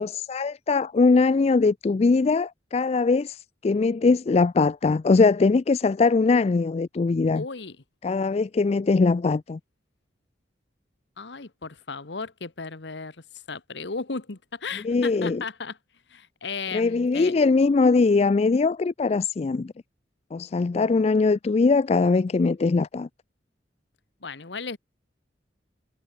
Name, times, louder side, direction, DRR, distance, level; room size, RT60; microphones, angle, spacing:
voice 1, 0.0-7.4 8.0-9.6 14.8-15.4 16.7-19.7 20.3-23.1, left 4 dB, 35° left, 0.3 m, -21 dB
voice 2, 7.3-7.8 11.2-13.2 13.5-15.8 16.1-17.4 24.2-24.8, left 4 dB, 70° left, 1.2 m, -35 dB
head